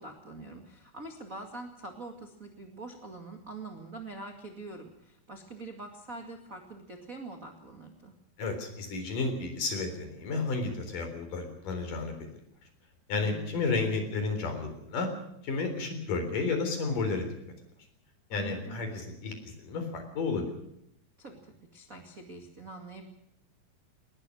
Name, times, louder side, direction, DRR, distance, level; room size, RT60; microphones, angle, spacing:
voice 1, 0.0-8.1 13.1-13.7 18.3-18.8 21.2-23.1, right 3 dB, 45° right, 2 dB, 1.1 m, -44 dB
voice 2, 8.4-12.3 13.1-15.1 15.4-17.3 18.3-20.5, left 3 dB, 45° left, 6 dB, 5.1 m, -32 dB
20.5 x 20.5 x 6.3 m, 0.79 s
omnidirectional pair, 5.4 m